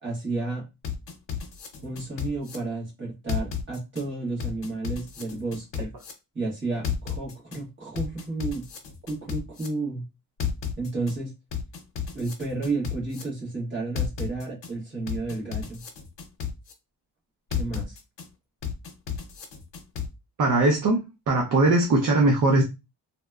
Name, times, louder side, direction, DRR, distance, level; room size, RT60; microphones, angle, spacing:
voice 1, 0.0-0.7 1.8-5.9 6.3-8.6 9.1-10.0 10.8-11.3 12.1-15.8 17.5-18.0, right 3 dB, 25° right, -4 dB, 1.2 m, -32 dB
sound 1, 0.8-2.6 3.3-4.0 4.4-6.1 6.8-7.6 7.9-9.7 10.4-11.1 11.5-13.2 13.9-14.7 15.1-16.7 17.5-18.2 18.6-20.1, left 8 dB, 90° left, 0.7 m, -32 dB
voice 2, 20.4-22.6, right 2 dB, 50° right, 1 dB, 0.5 m, -20 dB
2.7 x 2.1 x 2.3 m, 0.25 s
wide cardioid pair, 170°, 41 cm